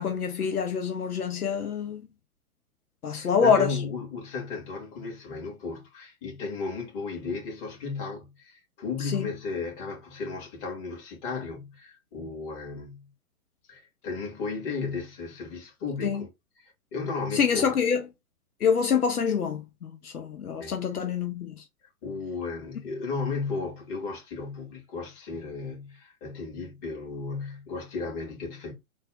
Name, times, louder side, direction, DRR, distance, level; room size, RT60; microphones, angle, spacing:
voice 1, 0.0-2.0 3.0-3.8 9.1-9.3 16.0-16.2 17.3-18.0 18.6-21.6, left 6 dB, 85° left, 0.8 m, -26 dB
voice 2, 3.1-13.1 13.7-16.3 16.6-17.7 20.6-20.8 22.0-28.7, left 4 dB, 35° left, 2.3 m, -34 dB
4.0 x 2.4 x 3.7 m
hypercardioid pair, 115°, 43 cm